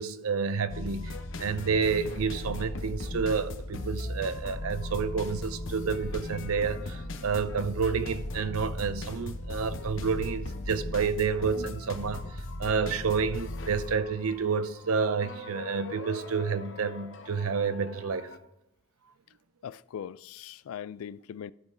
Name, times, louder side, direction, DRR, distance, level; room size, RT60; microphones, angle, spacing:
voice 1, 0.0-12.2 12.6-18.3, right 5 dB, 80° right, 0.6 m, -29 dB
sound 1, 0.7-18.4, left 1 dB, 60° left, 0.9 m, -38 dB
voice 2, 19.6-21.5, left 8 dB, 75° left, 0.3 m, -40 dB
12.0 x 5.3 x 3.8 m
head